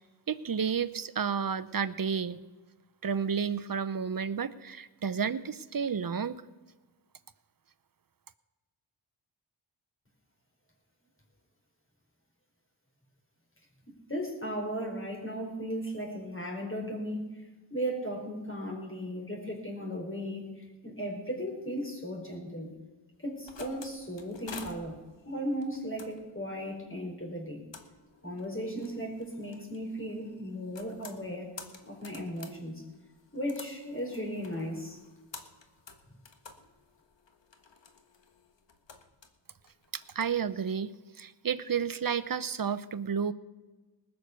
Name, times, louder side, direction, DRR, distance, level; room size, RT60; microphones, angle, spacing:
voice 1, 0.3-2.4 3.0-6.4 40.2-40.9 41.2-43.3, right 6 dB, 50° right, 15 dB, 0.7 m, -31 dB
voice 2, 13.9-17.4 17.7-22.7 23.2-25.0 25.3-27.7 28.2-31.5 31.8-32.8 33.3-35.0, equal, 25° left, 0 dB, 4.8 m, -36 dB
sound 1, 23.1-40.4, left 4 dB, 70° left, 1.5 m, -51 dB
19.5 x 6.6 x 6.7 m, 1.2 s
wide cardioid pair, 60°, 46 cm